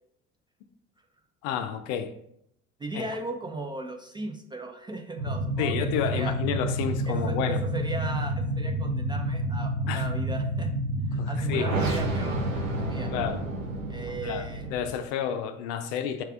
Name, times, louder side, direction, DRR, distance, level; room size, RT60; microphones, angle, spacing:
voice 1, 1.4-2.1 2.9-3.0 5.6-7.6 9.9-10.1 11.2-11.7 13.1-13.4 14.2-14.4 14.7-16.2, left 8 dB, 60° left, 8 dB, 0.5 m, -30 dB
voice 2, 2.8-6.4 7.1-10.7 11.1-13.1 13.9-14.8, right 2 dB, 15° right, 3 dB, 0.3 m, -37 dB
sound 1, 5.2-14.9, right 1 dB, 85° right, 0.6 m, -29 dB
5.8 x 3.2 x 2.4 m, 0.74 s
figure-of-eight pair, 50°, 38 cm